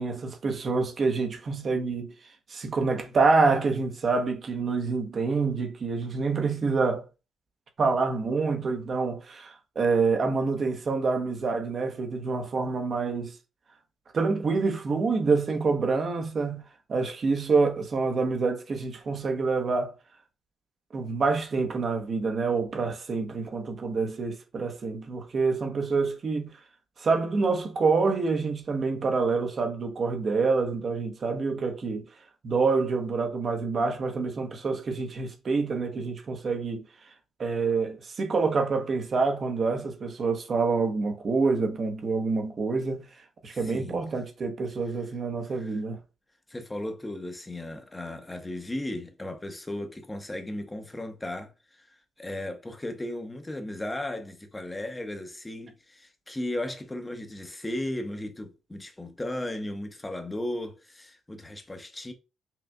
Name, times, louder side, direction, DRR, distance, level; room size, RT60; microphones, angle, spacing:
voice 1, 0.0-2.1 2.5-7.1 7.8-13.4 14.1-16.6 16.9-19.9 20.9-26.6 27.0-32.1 32.4-36.9 37.4-46.0, right 4 dB, 45° right, 0.9 m, -27 dB
voice 2, 43.5-44.0 45.5-45.8 46.5-62.1, left 1 dB, 15° left, 0.8 m, -36 dB
5.7 x 2.5 x 2.3 m
cardioid pair, 90°, 0 cm